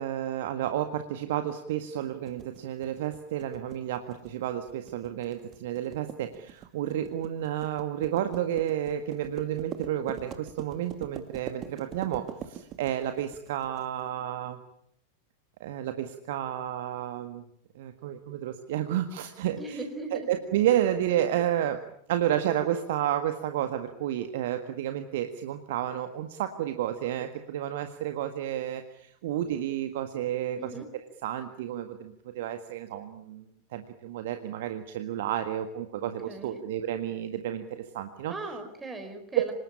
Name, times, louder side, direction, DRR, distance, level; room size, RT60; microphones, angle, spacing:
voice 1, 0.0-14.6 15.6-17.4 17.8-19.8 20.1-21.8 22.1-30.8 31.2-33.5 33.7-38.3 39.4-39.5, right 11 dB, 55° right, 8 dB, 1.7 m, -31 dB
sound 1, 2.3-13.8, right 9 dB, 30° right, 2.6 m, -43 dB
voice 2, 19.6-20.3 30.6-30.9 36.0-36.6 38.3-39.5, right 2 dB, 10° right, 5 dB, 4.4 m, -39 dB
26.0 x 20.0 x 10.0 m, 0.72 s
figure-of-eight pair, 90°, 0 cm